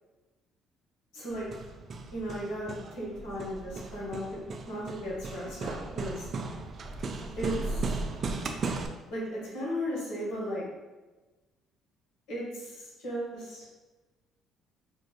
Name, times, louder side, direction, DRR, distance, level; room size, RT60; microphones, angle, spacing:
voice 1, 1.1-1.5 2.1-4.4 4.7-6.3 7.4-8.0 9.1-10.6 12.3-13.6, equal, 70° left, -6 dB, 1.4 m, -36 dB
Hammer, 1.3-8.9, right 3 dB, 50° right, 0.3 m, -36 dB
5.1 x 2.4 x 2.2 m, 1.2 s
supercardioid pair, 65°, 0 cm